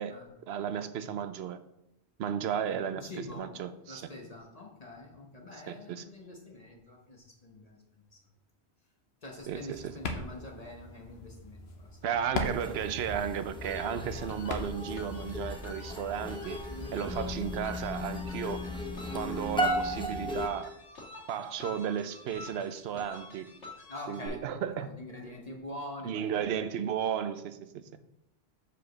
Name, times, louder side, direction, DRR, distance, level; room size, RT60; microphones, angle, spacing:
voice 1, 0.5-1.6 2.2-3.1 3.4-4.0 5.7-6.0 9.5-9.9 12.0-16.6 16.9-18.6 19.1-20.8 21.3-23.5 24.1-24.9 26.0-27.6, right 8 dB, 70° right, 12 dB, 0.8 m, -34 dB
voice 2, 2.9-3.5 3.9-7.8 8.1-8.2 9.2-11.9 16.7-17.2 23.9-26.5, left 1 dB, 35° left, 0 dB, 1.0 m, -45 dB
sound 1, 9.4-15.3, left 3 dB, 70° left, 1.0 m, -40 dB
sound 2, 12.4-20.5, equal, 5° left, 0.6 m, -36 dB
sound 3, 13.6-24.3, left 2 dB, 90° left, 2.0 m, -48 dB
5.0 x 4.9 x 6.2 m, 0.84 s
omnidirectional pair, 1.1 m